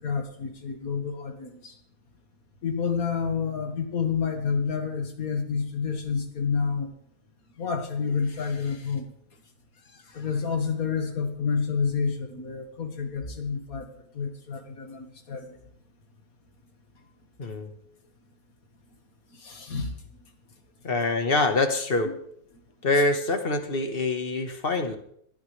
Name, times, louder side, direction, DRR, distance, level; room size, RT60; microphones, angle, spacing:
voice 1, 0.0-1.7 2.6-6.9 7.6-9.1 10.1-13.9 14.1-15.5 19.4-19.9, left 5 dB, 70° left, 5 dB, 2.2 m, -29 dB
voice 2, 17.4-17.7 20.8-22.1 22.8-24.9, left 3 dB, 40° left, 6 dB, 1.6 m, -25 dB
20.5 x 13.0 x 3.4 m, 0.68 s
omnidirectional pair, 1.6 m